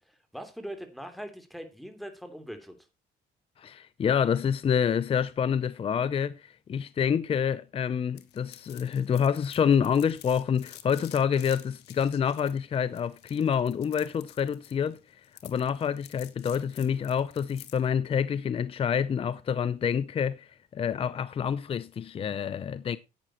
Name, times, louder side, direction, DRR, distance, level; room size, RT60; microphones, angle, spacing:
voice 1, 0.1-2.7, equal, ahead, 3.2 m, -41 dB
voice 2, 3.6-23.0, left 7 dB, 35° left, 0.6 m, -27 dB
sound 1, 8.2-17.9, left 13 dB, 80° left, 1.6 m, -51 dB
11.5 x 8.8 x 4.3 m
cardioid pair, 110°, 17 cm